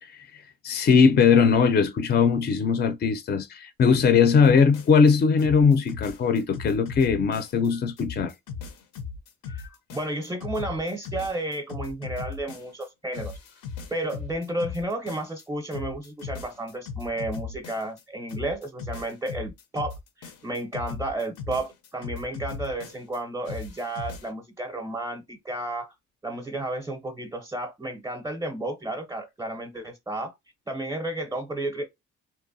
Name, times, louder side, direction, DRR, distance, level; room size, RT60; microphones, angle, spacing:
voice 1, 0.0-8.3, left 5 dB, 35° left, 0.4 m, -20 dB
sound 1, 4.4-5.1 5.4-7.7 8.0-12.9 13.1-15.4 15.7-18.0 18.3-23.2 23.5-24.3, left 5 dB, 80° left, 0.6 m, -38 dB
voice 2, 9.5-13.4 13.9-25.9 26.2-30.3 30.7-31.9, right 1 dB, 10° right, 0.6 m, -32 dB
2.8 x 2.1 x 2.5 m
cardioid pair, 90°, 30 cm